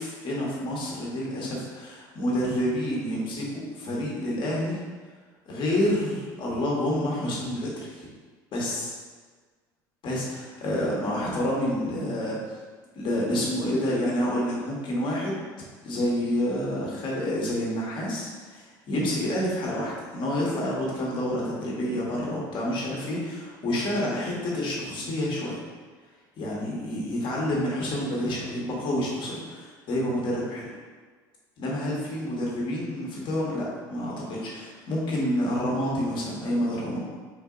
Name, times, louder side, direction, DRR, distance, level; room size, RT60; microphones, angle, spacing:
voice 1, 0.0-4.8 5.5-8.1 8.5-8.9 10.0-12.4 12.9-15.5 15.8-25.6 26.4-30.7 31.6-37.0, left 1 dB, 50° left, -4 dB, 1.4 m, -28 dB
3.9 x 2.7 x 3.8 m, 1.5 s
supercardioid pair, 85°, 10 cm